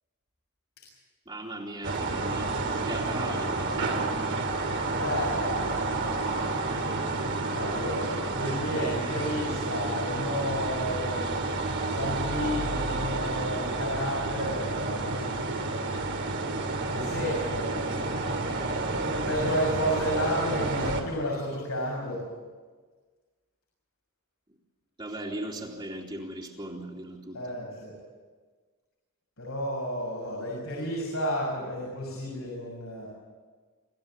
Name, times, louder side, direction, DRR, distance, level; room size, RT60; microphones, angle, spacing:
voice 1, 1.3-3.8 25.0-27.4, right 1 dB, 25° right, -4 dB, 3.1 m, -38 dB
sound 1, 1.8-21.0, right 3 dB, 60° right, 2.8 m, -30 dB
voice 2, 5.0-6.0 7.5-11.2 11.9-15.2 16.9-17.8 19.1-22.2 27.3-28.0 29.4-33.1, equal, 80° left, -3 dB, 7.0 m, -32 dB
26.5 x 15.5 x 9.0 m, 1.4 s
head